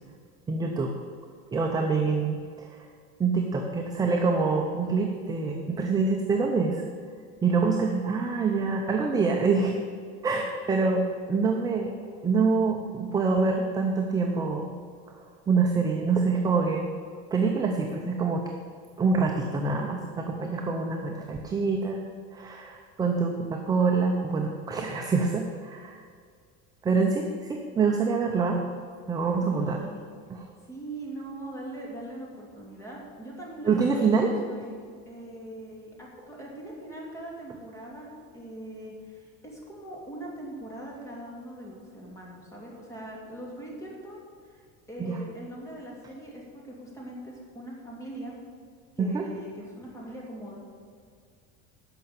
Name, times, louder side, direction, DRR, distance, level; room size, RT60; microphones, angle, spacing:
voice 1, 0.5-0.9 1.5-2.9 3.2-6.8 7.4-9.8 10.2-14.7 15.1-16.9 17.3-18.5 19.0-22.0 22.3-26.0 26.8-28.7 29.1-29.9 30.3-30.5 33.7-34.3 45.0-45.2 49.0-49.2, right 4 dB, 10° right, 1 dB, 0.6 m, -26 dB
voice 2, 29.4-30.1 30.6-34.8 35.1-48.4 49.0-50.6, right 1 dB, 10° left, -3 dB, 2.6 m, -41 dB
12.5 x 5.7 x 8.7 m, 2.1 s
cardioid pair, 170°, 30 cm